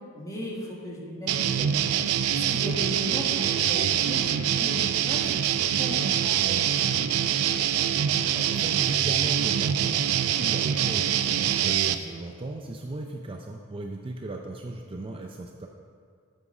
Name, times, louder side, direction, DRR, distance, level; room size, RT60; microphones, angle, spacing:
voice 1, 0.1-4.3 4.6-5.4 5.7-7.3, equal, 15° left, -3 dB, 1.6 m, -37 dB
sound 1, 1.3-11.9, right 9 dB, 80° right, 0.4 m, -25 dB
voice 2, 8.1-15.7, right 2 dB, 25° right, 2 dB, 0.4 m, -37 dB
8.1 x 7.6 x 4.8 m, 2.2 s
head